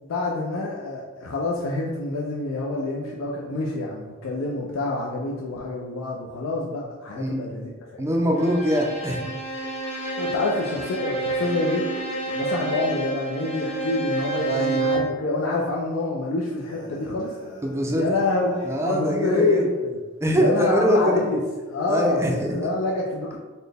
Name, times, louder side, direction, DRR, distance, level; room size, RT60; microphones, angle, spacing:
voice 1, 0.0-8.1 10.2-11.9 12.3-17.3 18.0-19.9 20.4-21.4 21.7-23.4, left 2 dB, 75° left, -2 dB, 0.4 m, -27 dB
voice 2, 7.2-7.5 8.0-9.3 14.5-14.9 17.6-18.0 18.6-19.7 20.2-21.1 21.9-22.7, equal, 15° right, 0 dB, 0.4 m, -23 dB
Bowed string instrument, 8.4-15.2, right 2 dB, 30° left, 0.7 m, -29 dB
sound 1, 16.6-19.2, equal, 45° left, 1.5 m, -45 dB
4.1 x 2.1 x 3.4 m, 1.3 s
head